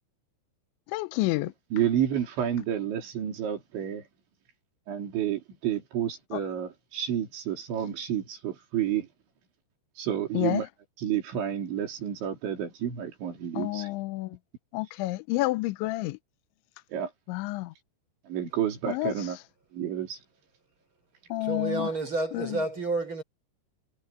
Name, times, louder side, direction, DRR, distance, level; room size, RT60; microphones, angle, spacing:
voice 1, 0.9-1.5 6.3-6.4 10.3-10.6 13.6-14.4 14.7-16.2 17.3-17.7 18.9-19.1 21.3-21.9 22.3-22.6, left 19 dB, 80° left, 3.0 m, -29 dB
voice 2, 1.7-4.0 4.9-9.1 10.0-10.7 11.0-13.9 16.9-17.1 18.3-19.4 19.7-20.2, right 10 dB, 70° right, 5.8 m, -30 dB
voice 3, 21.4-23.2, right 3 dB, 25° right, 6.7 m, -30 dB
omnidirectional pair, 5.6 m